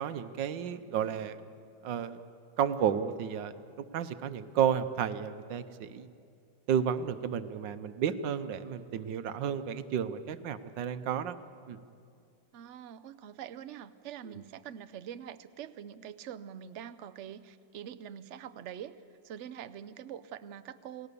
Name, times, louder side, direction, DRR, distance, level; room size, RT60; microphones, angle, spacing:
voice 1, 0.0-1.4 1.8-2.2 2.6-6.1 6.7-11.4 11.7-11.8, right 8 dB, 85° right, 12 dB, 1.5 m, -32 dB
voice 2, 12.5-19.0 19.2-21.1, right 9 dB, 60° right, 14 dB, 0.8 m, -44 dB
29.0 x 18.5 x 6.9 m, 2.4 s
omnidirectional pair, 1.9 m